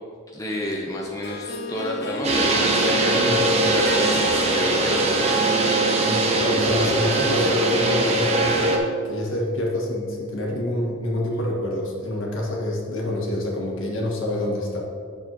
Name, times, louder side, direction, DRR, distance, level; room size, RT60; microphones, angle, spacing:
voice 1, 0.3-3.2 3.6-5.6, equal, 15° left, -2 dB, 0.8 m, -30 dB
Harp, 0.9-6.7, left 2 dB, 50° left, 0.5 m, -35 dB
sound 1, 2.2-8.8, right 2 dB, 30° right, 0.8 m, -21 dB
voice 2, 6.0-8.7 9.0-14.8, left 1 dB, 70° left, -2 dB, 1.7 m, -27 dB
9.4 x 6.6 x 3.0 m, 2.3 s
head